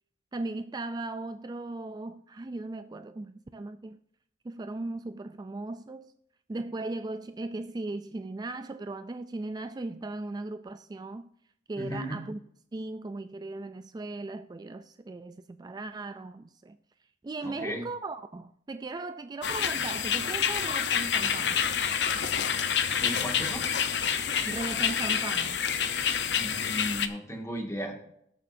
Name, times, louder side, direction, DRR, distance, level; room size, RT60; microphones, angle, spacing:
voice 1, 0.3-4.0 4.4-6.1 6.5-11.3 11.7-12.4 12.7-16.8 17.2-21.6 24.5-25.6, right 2 dB, 25° right, 0.3 m, -37 dB
voice 2, 11.7-12.2 17.4-17.9 23.0-23.7 26.3-27.9, equal, 15° left, 2.0 m, -35 dB
sound 1, 19.4-27.1, left 7 dB, 80° left, 0.9 m, -28 dB
19.5 x 6.7 x 2.7 m
head